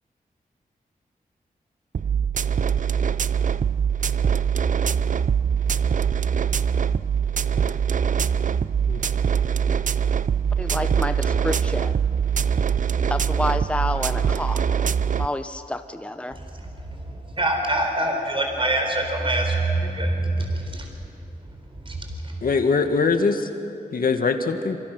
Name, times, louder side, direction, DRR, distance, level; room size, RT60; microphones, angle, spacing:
sound 1, 1.9-15.3, right 7 dB, 55° right, 0.6 m, -23 dB
voice 1, 10.6-12.0 13.1-14.8 15.2-16.4, left 1 dB, 5° left, 8 dB, 1.0 m, -29 dB
voice 2, 16.3-20.9 21.8-22.4, right 1 dB, 35° right, 2 dB, 4.4 m, -25 dB
voice 3, 22.4-23.5 23.9-24.8, left 4 dB, 65° left, 6 dB, 1.9 m, -22 dB
27.0 x 26.0 x 6.3 m, 2.7 s
cardioid pair, 75°, 16 cm